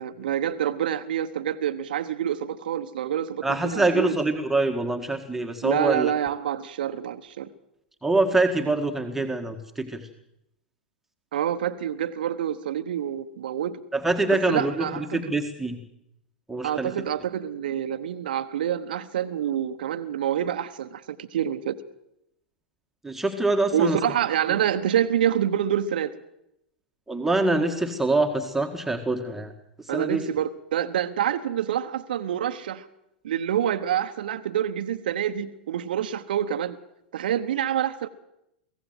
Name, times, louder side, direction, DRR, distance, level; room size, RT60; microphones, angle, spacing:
voice 1, 0.0-4.2 5.6-7.5 11.3-13.8 14.3-15.3 16.6-21.8 23.7-26.1 29.9-32.9 33.2-36.8 37.1-38.1, right 10 dB, 60° right, 10 dB, 1.1 m, -27 dB
voice 2, 3.4-6.1 8.0-10.0 13.9-14.7 15.1-15.8 16.5-16.9 23.0-24.0 27.1-29.5 29.9-30.2, right 2 dB, 5° right, 3 dB, 1.8 m, -24 dB
23.5 x 16.5 x 7.7 m, 0.84 s
figure-of-eight pair, 95°, 5 cm